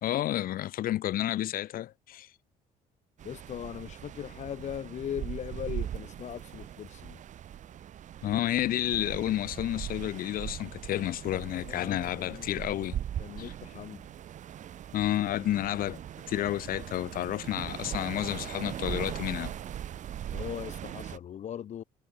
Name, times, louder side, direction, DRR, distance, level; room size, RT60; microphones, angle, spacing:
voice 1, 0.0-2.3 8.2-13.0 13.4-13.5 14.9-16.0 16.3-19.6, left 13 dB, 70° left, 2.4 m, -30 dB
voice 2, 3.2-7.2 11.7-12.5 13.2-14.1 20.3-21.8, left 9 dB, 50° left, 1.1 m, -39 dB
sound 1, 3.2-21.2, right 10 dB, 50° right, 1.0 m, -40 dB
cardioid pair, 105°, 16 cm